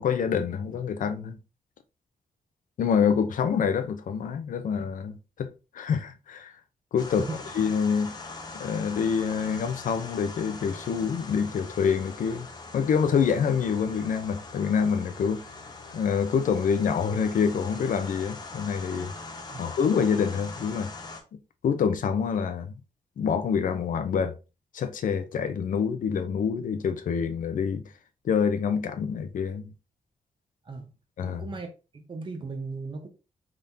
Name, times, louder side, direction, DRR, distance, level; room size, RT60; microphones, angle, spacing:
voice 1, 0.0-1.4 2.8-6.5 6.9-7.2 7.5-8.1 8.5-12.5 12.7-15.4 15.9-19.1 19.6-20.9 21.6-22.7 23.2-24.4 24.7-27.9 28.2-29.7 31.2-31.4, left 6 dB, 75° left, 0.6 m, -26 dB
sound 1, 7.0-21.2, left 3 dB, 30° left, 0.8 m, -42 dB
voice 2, 31.2-31.7 31.9-33.1, right 3 dB, 35° right, 0.9 m, -36 dB
5.1 x 3.7 x 2.7 m
wide cardioid pair, 165°, 14 cm